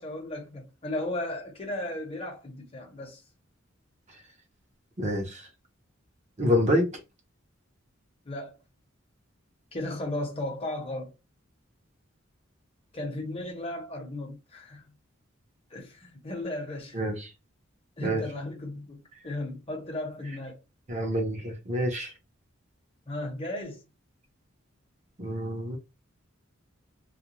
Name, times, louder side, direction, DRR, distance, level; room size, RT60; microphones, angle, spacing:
voice 1, 0.0-3.2 8.2-8.6 9.7-11.1 12.9-14.9 15.7-17.0 18.0-19.0 19.2-20.6 23.1-23.8, left 1 dB, 30° left, 0.9 m, -35 dB
voice 2, 5.0-5.5 6.4-6.9 16.9-17.3 18.0-18.2 20.9-22.1 25.2-25.8, equal, 35° right, 0.8 m, -27 dB
2.4 x 2.3 x 2.9 m
head